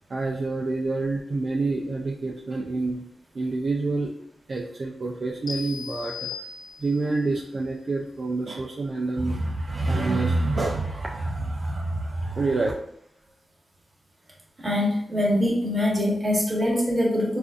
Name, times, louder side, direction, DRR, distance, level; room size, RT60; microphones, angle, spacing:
voice 1, 0.1-3.1 3.3-4.1 4.5-6.3 6.8-12.7, right 3 dB, 55° right, -1 dB, 0.3 m, -27 dB
sound 1, 5.5-7.2, left 6 dB, 75° left, 0.6 m, -37 dB
voice 2, 14.6-17.4, left 1 dB, 30° right, -3 dB, 1.1 m, -23 dB
3.7 x 2.5 x 2.4 m, 0.69 s
wide cardioid pair, 80°, 0 cm